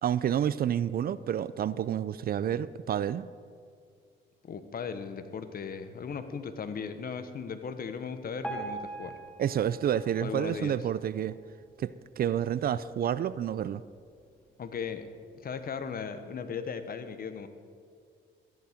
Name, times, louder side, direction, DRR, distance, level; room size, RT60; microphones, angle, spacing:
voice 1, 0.0-3.3 9.4-11.4 11.8-13.8, right 9 dB, 50° right, 17 dB, 0.4 m, -29 dB
voice 2, 4.4-9.1 10.2-10.7 14.6-15.1 15.3-17.5, left 6 dB, 50° left, 10 dB, 1.1 m, -37 dB
Piano, 8.4-11.5 12.1-12.2 12.5-12.6 13.3-13.4 14.0-14.1, right 3 dB, 5° left, 1.8 m, -42 dB
14.0 x 11.0 x 5.1 m, 2.2 s
cardioid pair, 90°, 20 cm